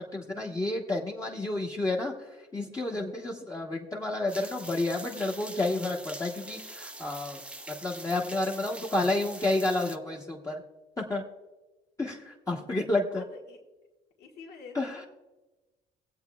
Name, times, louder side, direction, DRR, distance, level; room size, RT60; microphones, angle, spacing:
voice 1, 0.0-2.1 2.5-7.4 7.7-10.6 11.0-11.2 12.0-13.2 14.7-15.0, left 2 dB, 20° left, -3 dB, 1.1 m, -30 dB
sound 1, 4.3-10.0, right 1 dB, 5° right, 0.5 m, -44 dB
voice 2, 13.2-13.6 14.2-15.1, left 4 dB, 75° left, -2 dB, 1.7 m, -47 dB
23.5 x 8.0 x 2.3 m, 1.1 s
cardioid pair, 110°, 17 cm